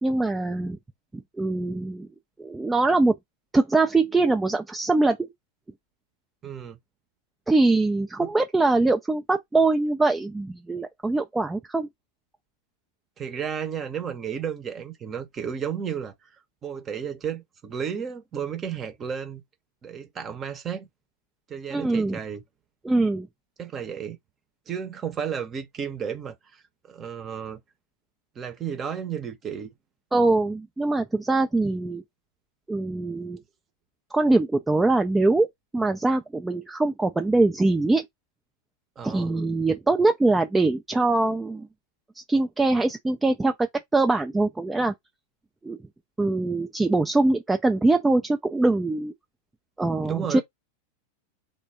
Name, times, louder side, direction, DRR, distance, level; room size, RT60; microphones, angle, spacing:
voice 1, 0.0-0.8 1.1-2.1 2.4-3.2 3.5-5.3 7.5-11.9 21.7-22.2 22.8-23.3 30.1-32.0 32.7-33.4 34.1-35.5 35.7-38.1 39.0-41.7 42.2-43.7 43.9-44.9 45.6-45.8 46.2-49.1 49.8-50.4, right 2 dB, 10° right, 0.3 m, -23 dB
voice 2, 6.4-6.8 8.2-8.3 13.2-16.3 16.6-19.4 19.8-20.9 21.5-22.4 23.6-24.2 24.7-26.6 26.9-27.6 28.4-29.7 39.0-39.3 50.1-50.4, right 7 dB, 25° right, 0.8 m, -33 dB
3.3 x 2.2 x 3.5 m
figure-of-eight pair, 90°, 0 cm